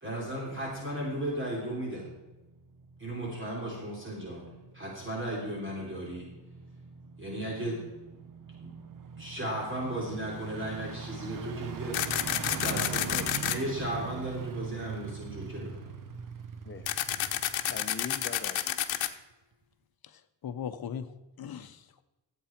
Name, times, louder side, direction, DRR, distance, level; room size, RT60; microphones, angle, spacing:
voice 1, 0.0-2.1 3.0-4.4 4.7-6.3 7.2-7.8 8.6-8.7 9.2-12.0 12.5-15.9, right 1 dB, 25° right, -3 dB, 3.2 m, -35 dB
sound 1, 2.2-18.6 19.0-19.1, right 6 dB, 45° right, 1.0 m, -42 dB
sound 2, 11.9-13.6 16.9-19.1, left 12 dB, 90° left, 1.0 m, -30 dB
voice 2, 16.6-17.1 17.7-19.1, left 5 dB, 25° left, 8 dB, 1.0 m, -42 dB
voice 3, 20.0-22.0, left 8 dB, 55° left, 11 dB, 0.9 m, -40 dB
15.0 x 8.4 x 4.5 m, 1.1 s
cardioid pair, 120°, 44 cm